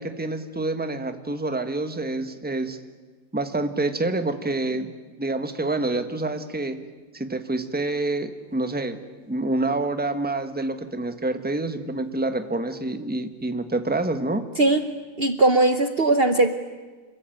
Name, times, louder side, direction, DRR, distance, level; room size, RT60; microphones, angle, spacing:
voice 1, 0.0-2.8 3.3-4.9 5.2-6.8 7.1-9.0 9.3-14.4, right 2 dB, 5° right, 8 dB, 1.3 m, -27 dB
voice 2, 15.2-16.6, right 2 dB, 40° right, 9 dB, 1.2 m, -19 dB
27.0 x 22.5 x 9.2 m, 1.3 s
omnidirectional pair, 1.6 m